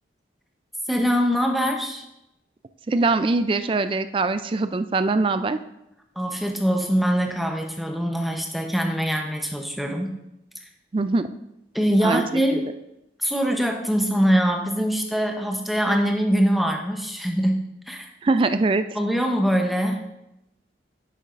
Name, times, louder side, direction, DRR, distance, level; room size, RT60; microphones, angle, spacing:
voice 1, 0.9-2.0 6.2-10.1 11.7-12.6 13.2-18.1 19.0-20.0, equal, ahead, 2 dB, 0.7 m, -23 dB
voice 2, 2.9-5.6 10.9-11.3 12.0-12.6 18.2-18.8, right 3 dB, 30° right, 11 dB, 0.3 m, -22 dB
9.9 x 7.1 x 2.5 m, 0.87 s
head